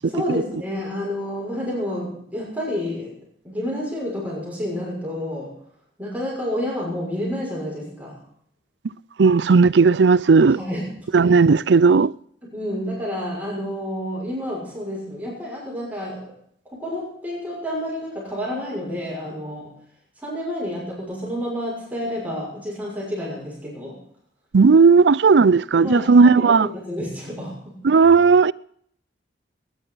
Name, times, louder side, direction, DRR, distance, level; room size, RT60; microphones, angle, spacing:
voice 1, 0.0-3.2 3.4-5.5 6.0-8.2 10.5-10.9 12.4-16.3 16.7-19.7 20.2-24.0 25.4-25.5 25.8-27.7, equal, 10° right, 6.3 m, -29 dB
voice 2, 9.2-10.6 11.1-12.1 24.5-26.7 27.8-28.5, right 4 dB, 80° right, 0.5 m, -14 dB
20.0 x 10.5 x 5.7 m
head